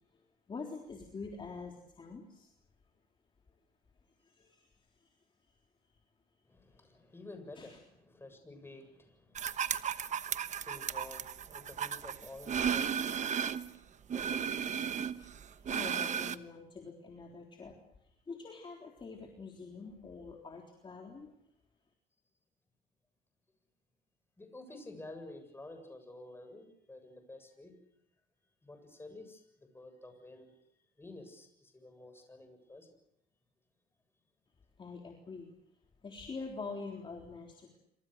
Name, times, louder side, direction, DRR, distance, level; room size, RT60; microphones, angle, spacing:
voice 1, 0.5-2.5 4.2-4.6 7.6-7.7 14.8-15.2 15.7-17.8 18.3-21.3 34.8-35.5 36.0-37.8, left 4 dB, 30° left, 2 dB, 3.7 m, -45 dB
voice 2, 6.5-15.8 24.4-27.8 28.6-30.5 31.0-32.9, left 2 dB, 15° left, 6 dB, 7.4 m, -52 dB
sound 1, 9.4-13.7 14.1-16.4, right 8 dB, 45° right, 1.2 m, -35 dB
28.0 x 26.5 x 6.6 m, 0.74 s
cardioid pair, 110°, 17 cm